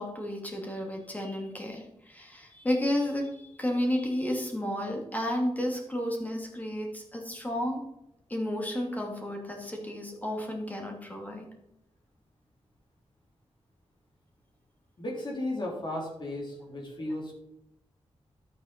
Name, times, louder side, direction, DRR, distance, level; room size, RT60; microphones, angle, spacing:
voice 1, 0.0-7.8 8.3-11.5, left 1 dB, 15° left, 1 dB, 2.7 m, -32 dB
voice 2, 15.0-17.3, left 1 dB, 45° left, -2 dB, 3.9 m, -35 dB
11.5 x 8.9 x 4.5 m, 0.82 s
wide cardioid pair, 160°, 11 cm